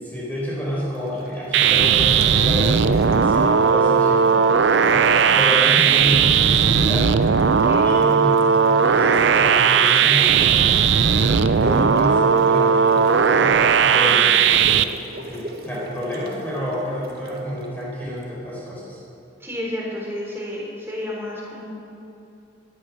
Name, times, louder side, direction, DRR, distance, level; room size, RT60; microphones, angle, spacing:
voice 1, 0.0-4.5 4.8-7.0 7.8-8.4 8.8-10.5 11.1-13.5 13.8-14.3 15.2-19.0, equal, 10° left, -7 dB, 4.5 m, -28 dB
sound 1, 0.9-1.4 1.7-4.4 4.7-6.5 6.7-18.2, right 1 dB, 55° right, 1.6 m, -39 dB
sound 2, 1.5-14.8, right 6 dB, 75° right, 0.5 m, -17 dB
voice 2, 4.8-5.9 6.3-6.4 7.5-7.9 11.3-11.8 13.9-14.5 19.4-21.6, left 1 dB, 10° right, -3 dB, 3.8 m, -33 dB
17.5 x 12.5 x 6.2 m, 2.8 s
head